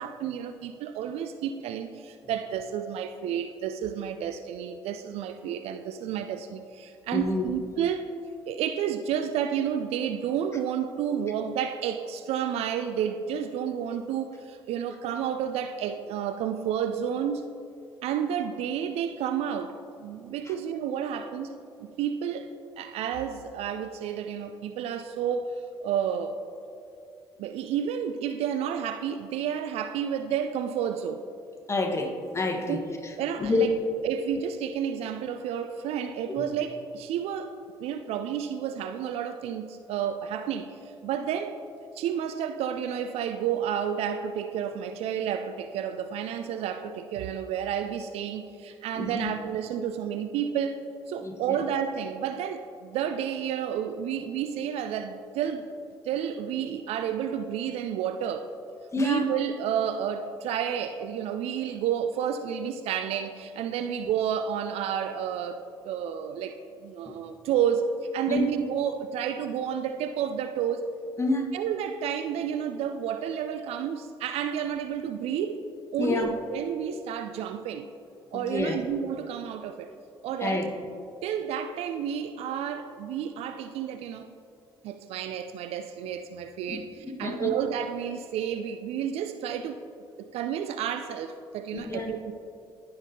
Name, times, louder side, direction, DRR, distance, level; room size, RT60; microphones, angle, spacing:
voice 1, 0.0-8.1 8.5-17.5 18.0-22.5 22.8-26.4 27.4-31.3 32.7-32.9 33.2-33.7 34.0-37.5 37.8-40.7 41.0-41.6 42.0-55.7 56.0-58.5 59.0-70.9 71.5-75.6 75.9-77.9 78.3-79.9 80.2-80.7 81.2-84.3 84.8-89.8 90.2-92.3, right 8 dB, 55° right, 9 dB, 0.4 m, -31 dB
voice 2, 7.1-7.5 31.7-33.1 33.4-33.8 36.3-36.4 49.0-49.3 51.2-51.6 58.9-59.3 67.1-67.2 68.3-68.4 70.9-71.5 76.0-76.3 78.3-78.8 80.4-80.7 86.7-86.8 87.0-87.5 91.7-92.1, left 3 dB, 20° left, 2 dB, 1.3 m, -28 dB
15.5 x 5.7 x 2.8 m, 2.5 s
figure-of-eight pair, 45°, 12 cm